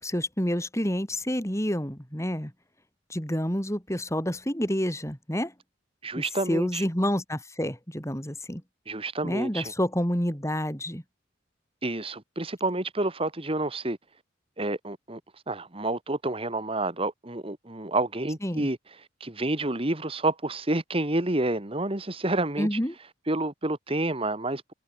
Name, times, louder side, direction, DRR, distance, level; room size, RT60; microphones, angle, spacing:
voice 1, 0.0-2.5 3.1-5.5 6.2-8.6 9.2-11.0 18.4-18.7 22.6-22.9, equal, 15° left, 7.2 m, -28 dB
voice 2, 6.0-6.8 8.9-9.7 11.8-14.0 14.6-15.2 15.5-18.8 19.2-22.8 23.3-24.7, right 2 dB, 30° right, 2.0 m, -29 dB
head